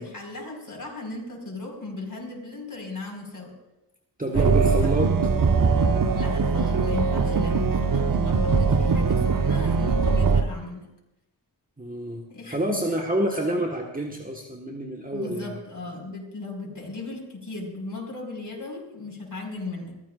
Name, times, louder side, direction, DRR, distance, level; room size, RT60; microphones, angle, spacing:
voice 1, 0.0-3.5 4.3-4.9 6.1-10.9 12.3-12.8 15.1-19.9, left 2 dB, 50° left, 0 dB, 5.0 m, -37 dB
voice 2, 4.2-5.2 11.8-15.6, right 1 dB, 20° right, 0 dB, 1.6 m, -28 dB
sound 1, 4.3-10.4, right 5 dB, 50° right, 0.9 m, -21 dB
23.0 x 14.5 x 2.5 m, 0.95 s
cardioid pair, 55°, 43 cm